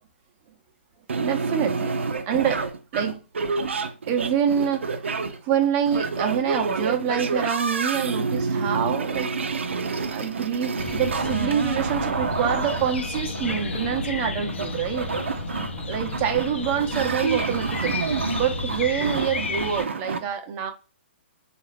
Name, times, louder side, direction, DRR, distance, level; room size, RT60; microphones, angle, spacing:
sound 1, 1.1-20.2, right 4 dB, 80° right, 0.6 m, -28 dB
voice 1, 1.2-2.0 2.3-2.7 2.9-3.2 4.1-9.3 10.1-15.1 15.9-18.0 18.3-20.7, right 8 dB, 30° right, 0.8 m, -26 dB
sound 2, 10.8-19.8, left 3 dB, 75° left, 0.7 m, -32 dB
3.8 x 2.5 x 3.2 m
hypercardioid pair, 130°, 6 cm